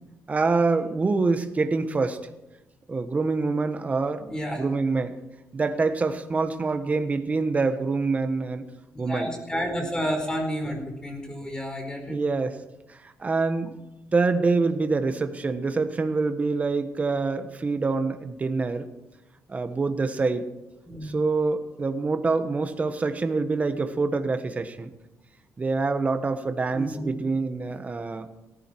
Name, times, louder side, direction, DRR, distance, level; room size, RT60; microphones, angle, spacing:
voice 1, 0.3-2.3 2.9-4.3 4.6-5.2 5.5-8.6 9.0-9.3 12.1-12.6 12.9-13.8 14.1-18.9 19.5-20.4 21.0-24.9 25.6-28.3, right 3 dB, 25° right, 8 dB, 1.3 m, -25 dB
voice 2, 4.2-4.7 9.1-12.2 20.9-21.2 26.7-27.1, equal, 15° left, 3 dB, 4.6 m, -31 dB
17.5 x 15.0 x 4.6 m, 0.94 s
cardioid pair, 130°, 6 cm